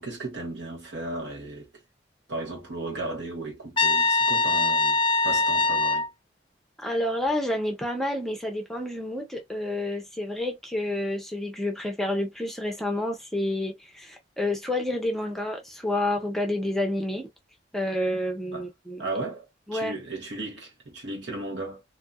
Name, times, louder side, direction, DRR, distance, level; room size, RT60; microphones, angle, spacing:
voice 1, 0.0-1.7 2.3-6.1 18.5-18.7 19.0-21.8, right 2 dB, 75° right, 1.2 m, -35 dB
Trumpet, 3.8-6.1, left 3 dB, 30° left, 0.4 m, -22 dB
voice 2, 6.8-17.3 17.7-19.1 19.7-20.0, left 1 dB, ahead, 0.7 m, -29 dB
2.7 x 2.6 x 2.3 m
head